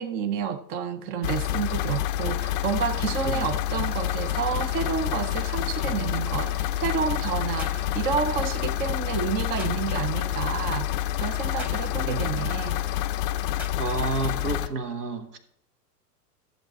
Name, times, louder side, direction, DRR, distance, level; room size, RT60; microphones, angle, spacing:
voice 1, 0.0-12.8, right 7 dB, 20° right, 0.4 m, -30 dB
sound 1, 1.2-14.7, left 12 dB, 35° left, 0.5 m, -28 dB
sound 2, 7.6-7.9 9.6-9.8 11.6-11.9 13.6-13.8, left 1 dB, 5° right, 1.2 m, -40 dB
voice 2, 13.8-15.4, right 4 dB, 70° right, 1.6 m, -30 dB
13.5 x 7.1 x 4.0 m
figure-of-eight pair, 95°, 49 cm